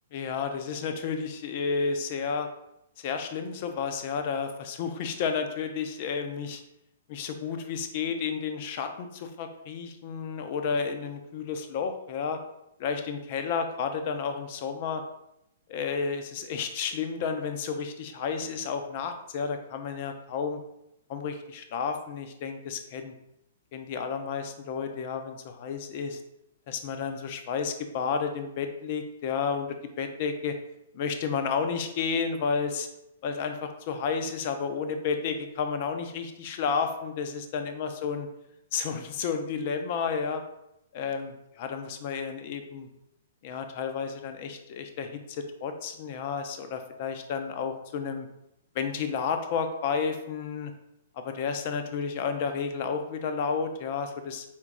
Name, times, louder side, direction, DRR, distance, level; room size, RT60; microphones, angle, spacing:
voice 1, 0.1-2.5 3.0-6.6 7.1-12.4 12.8-15.0 15.7-20.6 21.1-23.1 23.7-26.2 26.7-29.7 30.0-30.6 30.9-32.9 33.2-38.3 38.7-40.4 40.9-42.9 43.4-48.3 48.7-50.7 51.2-54.4, left 6 dB, 45° left, 7 dB, 0.5 m, -31 dB
4.5 x 2.4 x 3.6 m, 0.82 s
figure-of-eight pair, 115°, 0 cm